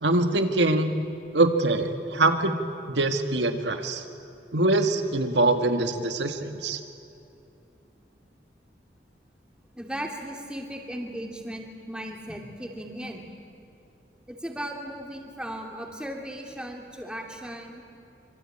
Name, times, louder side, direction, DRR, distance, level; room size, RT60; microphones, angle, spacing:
voice 1, 0.0-0.9 1.3-2.6 2.9-4.1 4.5-6.8, right 2 dB, 85° right, 6 dB, 2.0 m, -23 dB
voice 2, 9.7-13.3 14.3-17.8, equal, 5° right, 1 dB, 2.8 m, -37 dB
26.5 x 24.0 x 8.8 m, 2.7 s
head